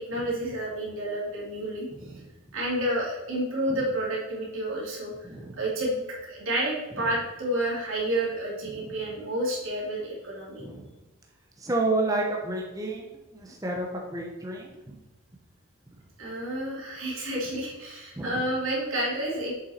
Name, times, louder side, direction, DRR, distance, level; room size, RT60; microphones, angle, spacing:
voice 1, 0.0-2.2 2.5-5.1 5.6-10.6 16.2-19.5, right 1 dB, 80° right, -4 dB, 2.6 m, -30 dB
voice 2, 1.9-2.2 5.2-5.6 7.0-7.1 8.6-8.9 10.6-10.9 11.6-13.0 13.3-15.0 18.2-18.4, right 2 dB, 15° right, -1 dB, 0.7 m, -31 dB
7.1 x 5.5 x 4.2 m, 1.1 s
head